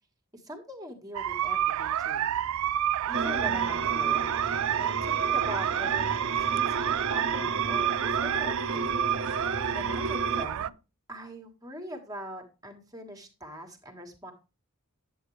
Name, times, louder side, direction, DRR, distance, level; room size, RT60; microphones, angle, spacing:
voice 1, 0.3-2.3 3.1-4.2 4.8-9.0 9.7-10.7 11.1-14.3, equal, 15° right, 4 dB, 1.5 m, -42 dB
sound 1, 1.1-10.7, right 10 dB, 75° right, 0.3 m, -29 dB
sound 2, 3.1-10.4, right 3 dB, 60° right, 0.8 m, -33 dB
9.3 x 8.0 x 3.2 m, 0.30 s
head